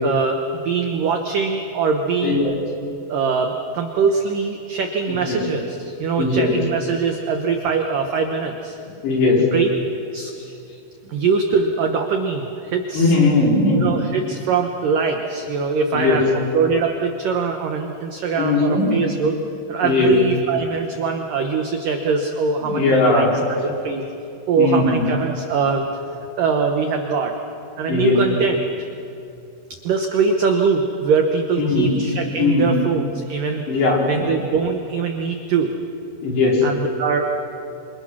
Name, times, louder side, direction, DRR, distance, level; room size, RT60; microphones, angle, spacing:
voice 1, 0.0-2.5 3.1-8.8 9.4-9.7 10.1-10.3 11.1-13.2 13.8-19.4 19.7-24.0 24.5-25.9 26.4-27.4 27.8-28.9 29.8-33.6 34.0-35.7 36.6-37.3, right 5 dB, 80° right, 4 dB, 1.9 m, -22 dB
voice 2, 6.2-6.5 9.0-9.4 12.9-13.9 15.9-16.2 18.4-18.9 19.8-20.1 22.6-23.4 24.5-25.1 27.9-28.2 31.6-31.9 32.4-32.7 33.7-34.0 36.2-36.5, left 3 dB, 60° left, -3 dB, 6.5 m, -18 dB
26.5 x 26.5 x 6.2 m, 2.6 s
omnidirectional pair, 5.6 m